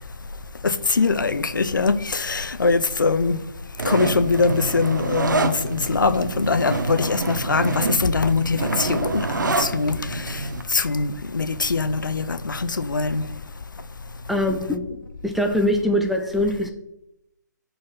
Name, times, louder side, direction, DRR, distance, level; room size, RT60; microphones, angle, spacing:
voice 1, 0.6-3.4 3.8-10.4 10.7-13.2, left 4 dB, 80° left, 0.6 m, -22 dB
sound 1, 3.8-10.6, right 3 dB, 70° right, 0.9 m, -27 dB
voice 2, 14.3-16.7, left 1 dB, ahead, 0.4 m, -23 dB
7.6 x 4.2 x 5.6 m
figure-of-eight pair, 145°, 10 cm